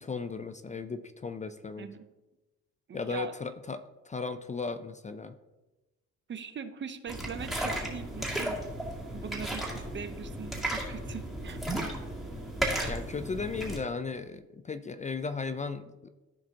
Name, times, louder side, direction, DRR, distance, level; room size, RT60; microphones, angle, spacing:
voice 1, 0.0-1.9 2.9-5.3 12.8-16.1, left 4 dB, 25° left, 11 dB, 0.4 m, -36 dB
voice 2, 1.8-2.1 2.9-3.3 6.3-8.6 9.1-11.6, right 6 dB, 40° right, 10 dB, 0.7 m, -41 dB
sound 1, 7.1-13.8, right 1 dB, ahead, 2.3 m, -34 dB
14.5 x 4.9 x 2.8 m, 1.1 s
cardioid pair, 90°, 30 cm